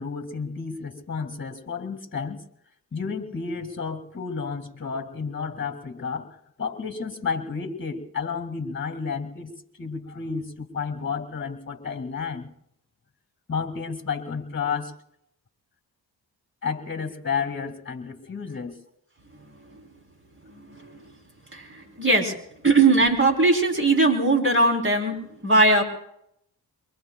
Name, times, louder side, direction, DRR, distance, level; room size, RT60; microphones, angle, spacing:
voice 1, 0.0-2.4 2.9-9.5 9.8-12.5 13.5-14.9 16.6-18.8, left 5 dB, 30° left, 9 dB, 2.2 m, -31 dB
voice 2, 21.5-22.3 22.6-25.8, right 2 dB, 30° right, 2 dB, 3.9 m, -20 dB
23.5 x 23.5 x 2.4 m, 0.74 s
cardioid pair, 65°, 40 cm